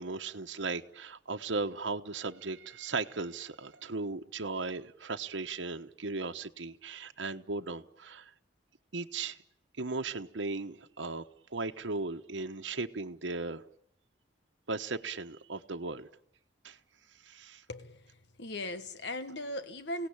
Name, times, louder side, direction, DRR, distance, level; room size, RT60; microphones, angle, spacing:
voice 1, 0.0-8.3 8.9-9.4 9.8-11.2 11.5-13.6 14.7-16.1 16.6-16.8 17.2-17.6, right 3 dB, 85° right, 1.2 m, -37 dB
voice 2, 17.7-18.0 18.4-20.1, left 1 dB, 70° left, 1.3 m, -38 dB
29.5 x 18.0 x 8.9 m
head